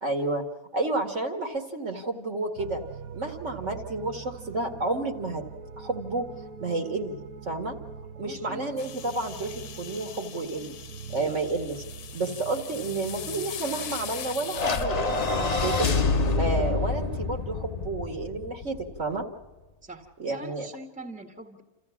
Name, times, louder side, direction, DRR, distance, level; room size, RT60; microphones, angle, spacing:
voice 1, 0.0-0.4 0.7-2.8 3.1-5.4 5.8-6.3 6.6-7.8 8.2-10.7 11.1-11.8 12.1-15.9 16.4-19.2 20.2-20.7, right 2 dB, 50° right, 4 dB, 2.3 m, -31 dB
sound 1, 2.6-16.9, right 6 dB, 80° right, 1.5 m, -43 dB
voice 2, 8.2-8.8 11.2-11.4 19.8-21.6, right 2 dB, 5° right, 4 dB, 1.9 m, -43 dB
sound 2, 8.8-14.9, left 9 dB, 90° left, 1.4 m, -40 dB
sound 3, 14.5-19.0, left 3 dB, 30° left, 0.9 m, -27 dB
28.5 x 15.0 x 7.2 m, 1.2 s
omnidirectional pair, 1.6 m